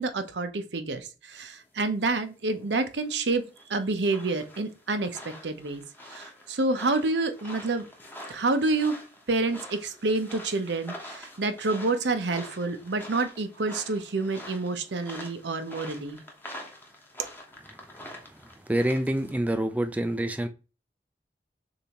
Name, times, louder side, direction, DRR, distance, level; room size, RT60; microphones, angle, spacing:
voice 1, 0.0-7.9 8.3-8.9 9.3-16.2, right 3 dB, 80° right, 8 dB, 0.8 m, -28 dB
sound 1, 2.2-19.3, left 1 dB, 10° left, 0.9 m, -46 dB
voice 2, 18.7-20.5, right 1 dB, 10° right, 8 dB, 0.4 m, -26 dB
6.6 x 2.7 x 2.9 m, 0.32 s
head